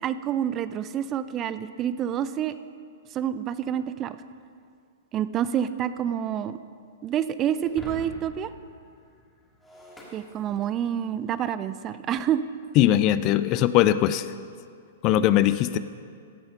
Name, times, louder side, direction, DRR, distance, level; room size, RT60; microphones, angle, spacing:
voice 1, 0.0-2.5 3.1-4.2 5.1-6.6 7.0-8.5 10.1-12.4, right 9 dB, 30° right, 14 dB, 0.4 m, -28 dB
Shatter, 7.6-11.1, equal, 10° left, 2.2 m, -45 dB
voice 2, 12.8-14.3 15.0-15.8, left 12 dB, 40° left, 14 dB, 0.4 m, -20 dB
15.5 x 5.6 x 5.7 m, 2.3 s
hypercardioid pair, 120°, 0 cm